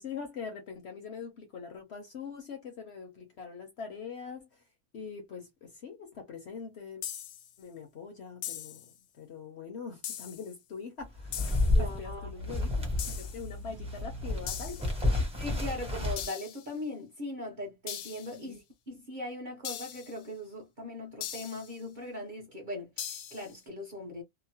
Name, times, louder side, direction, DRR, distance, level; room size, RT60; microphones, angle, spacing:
voice 1, 0.0-4.6 4.9-7.0 7.6-12.7 13.2-15.3 18.4-18.6, left 5 dB, 60° left, 0.8 m, -43 dB
sound 1, 7.0-7.5 8.4-8.9 10.0-10.5 11.3-11.8 13.0-13.5 14.5-15.0 16.2-16.7 17.9-18.4 19.6-20.2 21.2-21.8 23.0-23.6, left 9 dB, 80° left, 1.1 m, -40 dB
sound 2, 11.0-13.4 13.7-16.2, left 2 dB, 5° right, 0.5 m, -30 dB
sound 3, 11.6-15.1, left 1 dB, 70° right, 0.9 m, -45 dB
voice 2, 11.7-12.3 15.4-18.6 18.9-24.2, left 1 dB, 45° right, 0.7 m, -39 dB
2.9 x 2.0 x 2.7 m
omnidirectional pair, 1.6 m